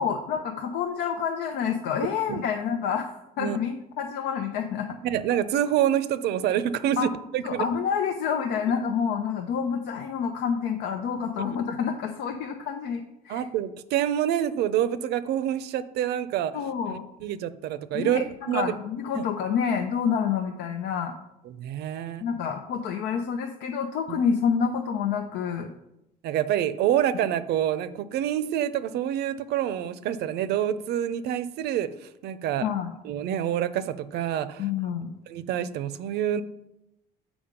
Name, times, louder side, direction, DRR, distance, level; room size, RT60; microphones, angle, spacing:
voice 1, 0.0-4.9 7.0-7.1 7.4-13.4 16.5-17.1 17.9-21.1 22.2-25.7 32.6-32.9 34.6-35.1, left 7 dB, 80° left, 5 dB, 0.7 m, -28 dB
voice 2, 4.9-7.7 11.4-11.5 13.3-16.5 16.9-18.7 19.1-19.2 21.5-22.2 26.2-32.6 33.0-34.6 35.3-36.4, right 10 dB, 75° right, 14 dB, 0.6 m, -27 dB
7.1 x 5.0 x 5.1 m, 0.86 s
cardioid pair, 110°, 17 cm